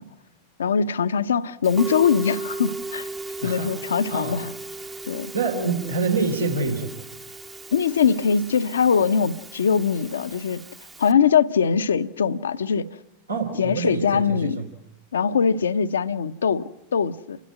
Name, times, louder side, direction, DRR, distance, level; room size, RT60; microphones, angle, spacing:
voice 1, 0.6-3.1 3.4-4.5 5.1-5.3 7.7-10.6 11.0-12.9 13.6-14.6 15.1-17.4, left 6 dB, 65° left, 0.8 m, -22 dB
Musical instrument, 1.6-11.1, right 3 dB, 15° right, 1.0 m, -37 dB
voice 2, 3.4-3.7 4.1-4.4 5.3-6.9 13.3-14.5, right 4 dB, 80° right, 3.2 m, -26 dB
29.5 x 11.5 x 9.1 m
figure-of-eight pair, 90°, 0 cm